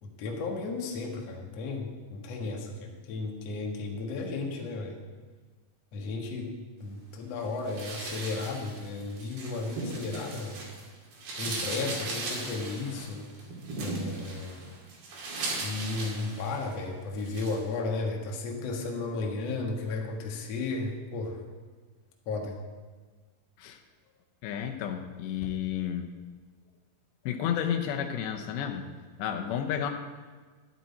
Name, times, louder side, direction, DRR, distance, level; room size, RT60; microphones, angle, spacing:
voice 1, 0.0-5.0 5.9-6.5 6.8-10.6 11.4-13.3 13.8-14.6 15.6-21.4 22.3-22.6, left 3 dB, 55° left, 1 dB, 1.9 m, -34 dB
sound 1, 7.7-10.8 11.1-16.8 17.2-17.6, right 3 dB, 65° right, 4.5 m, -37 dB
voice 2, 24.4-26.1 27.3-28.9 29.2-29.9, left 9 dB, 85° left, 5 dB, 3.1 m, -31 dB
12.5 x 12.0 x 4.2 m, 1.4 s
omnidirectional pair, 5.0 m